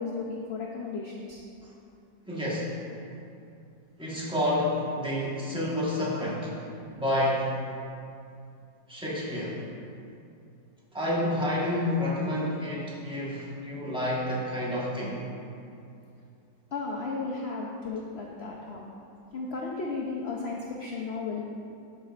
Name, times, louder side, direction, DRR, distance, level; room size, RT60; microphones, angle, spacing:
voice 1, 0.0-1.4 16.7-18.8 19.3-21.4, left 4 dB, 75° left, -2 dB, 0.5 m, -34 dB
voice 2, 2.3-2.7 4.0-6.6 6.9-7.5 8.9-9.6 10.9-15.2, left 1 dB, 5° right, -7 dB, 1.1 m, -29 dB
13.0 x 5.2 x 2.5 m, 2.6 s
omnidirectional pair, 1.9 m